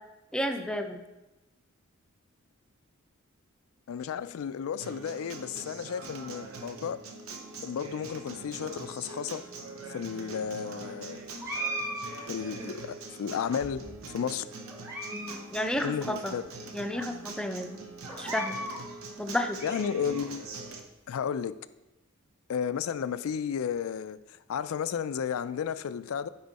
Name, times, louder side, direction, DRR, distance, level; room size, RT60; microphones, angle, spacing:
voice 1, 0.3-1.0 12.6-12.7 15.1-16.3 16.7-17.8 18.2-18.6 19.2-19.6, left 1 dB, 5° left, 5 dB, 0.5 m, -32 dB
voice 2, 3.9-7.0 7.6-9.4 9.9-11.2 12.3-13.9 14.1-14.5 15.8-16.4 19.6-20.4 21.1-21.6 22.5-26.3, left 7 dB, 80° left, 15 dB, 0.3 m, -33 dB
Acoustic guitar, 4.8-20.8, right 3 dB, 80° right, 0.8 m, -43 dB
sound 1, 11.4-12.8 13.5-14.2 14.7-15.4 15.7-15.8 16.4-16.5 16.9-17.0 18.0-18.8 19.3-20.3, right 1 dB, 15° right, 1.1 m, -38 dB
9.6 x 4.3 x 4.1 m, 0.98 s
head